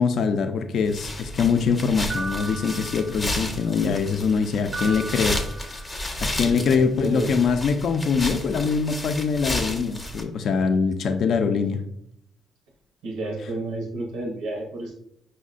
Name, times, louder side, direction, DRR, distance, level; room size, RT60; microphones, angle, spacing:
voice 1, 0.0-5.9 6.3-11.8, left 5 dB, 65° left, 7 dB, 0.3 m, -23 dB
sound 1, 0.9-10.2, left 1 dB, 20° left, 0.6 m, -32 dB
sound 2, 2.1-3.6 4.7-6.2, right 3 dB, 30° right, 0.4 m, -36 dB
voice 2, 6.4-7.4 13.0-15.0, right 2 dB, 90° right, 0 dB, 0.6 m, -31 dB
5.4 x 2.1 x 2.4 m, 0.73 s
cardioid pair, 90°, 0 cm